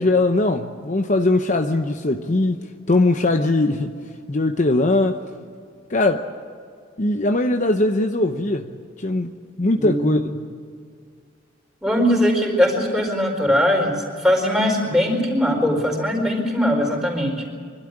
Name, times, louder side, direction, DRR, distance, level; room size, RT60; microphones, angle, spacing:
voice 1, 0.0-2.6 2.9-3.9 4.3-5.2 5.9-6.2 7.0-8.7 9.0-9.3 9.6-10.5, left 2 dB, 40° left, 6 dB, 0.8 m, -20 dB
voice 2, 9.8-10.1 11.8-17.4, equal, 5° right, -1 dB, 4.6 m, -20 dB
24.5 x 12.5 x 10.0 m, 2.1 s
head